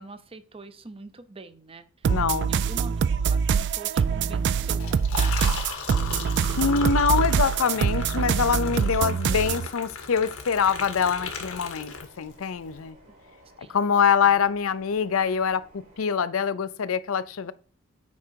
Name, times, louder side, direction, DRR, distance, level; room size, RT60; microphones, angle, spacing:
voice 1, 0.0-2.2 2.5-5.6 13.6-13.8 14.2-14.4, right 3 dB, 25° right, 0.7 m, -44 dB
sound 1, 2.0-9.7, right 6 dB, 55° right, 0.3 m, -24 dB
voice 2, 2.1-2.5 6.6-13.0 13.7-17.5, left 6 dB, 70° left, 0.5 m, -24 dB
Liquid, 4.7-12.4, left 5 dB, 85° left, 1.5 m, -36 dB
sound 2, 8.8-16.0, right 2 dB, 70° right, 4.3 m, -53 dB
8.6 x 4.7 x 4.5 m
head